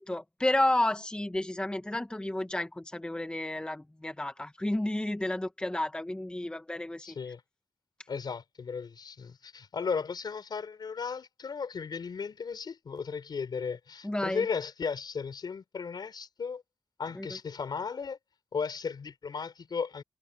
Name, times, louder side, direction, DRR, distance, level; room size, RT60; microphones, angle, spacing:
voice 1, 0.0-7.2 14.0-14.4 17.2-17.3, left 1 dB, 10° left, 1.2 m, -31 dB
voice 2, 7.0-7.4 8.1-16.6 17.0-18.2 18.5-20.0, left 5 dB, 70° left, 4.8 m, -35 dB
wide cardioid pair, 90°, 8 cm